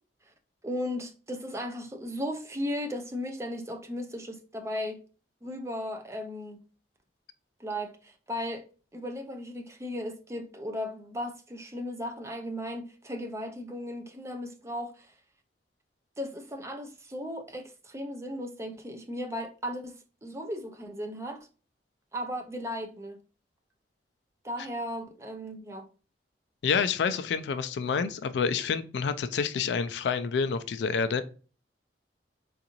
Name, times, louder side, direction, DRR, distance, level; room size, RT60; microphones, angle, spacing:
voice 1, 0.6-5.0 5.4-6.6 7.6-8.6 8.9-15.1 16.2-19.9 20.2-21.4 22.1-23.2 24.4-25.9, equal, 15° right, 0.5 m, -36 dB
voice 2, 26.6-31.2, left 6 dB, 70° left, 0.3 m, -28 dB
3.8 x 2.5 x 2.9 m
head